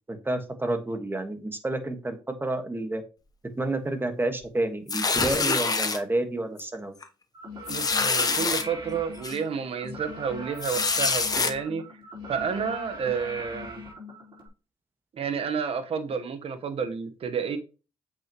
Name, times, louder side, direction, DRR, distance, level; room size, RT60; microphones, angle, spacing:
voice 1, 0.1-3.0 3.6-7.0, right 2 dB, 20° right, 7 dB, 1.6 m, -29 dB
sound 1, 4.9-6.0 6.6-6.8 7.0-7.1 7.7-8.6 9.2-9.4 10.6-11.5, left 4 dB, 35° left, 1.0 m, -25 dB
sound 2, 7.3-14.5, left 1 dB, 45° right, 4.4 m, -41 dB
voice 2, 7.7-11.8 12.3-13.8 15.1-17.6, right 6 dB, 60° right, 9 dB, 1.2 m, -30 dB
8.1 x 6.2 x 3.0 m, 0.33 s
cardioid pair, 65°, 11 cm